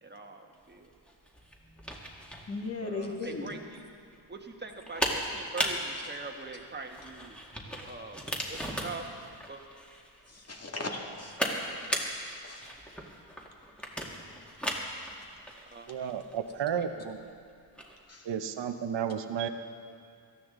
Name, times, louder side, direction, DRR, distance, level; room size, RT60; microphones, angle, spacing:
voice 1, 0.0-0.9 2.8-3.8 4.3-7.4 7.6-9.1 9.5-9.6 15.7-16.2, right 3 dB, 20° right, 3 dB, 1.4 m, -43 dB
sound 1, 0.6-18.0, equal, ahead, 2.0 m, -37 dB
voice 2, 2.5-3.5 10.3-11.4 12.4-12.7 18.1-18.3, left 3 dB, 30° left, 0 dB, 2.2 m, -37 dB
voice 3, 15.9-17.2 18.2-19.5, right 8 dB, 65° right, 8 dB, 1.0 m, -32 dB
18.0 x 13.5 x 3.8 m, 2.2 s
cardioid pair, 80°, 46 cm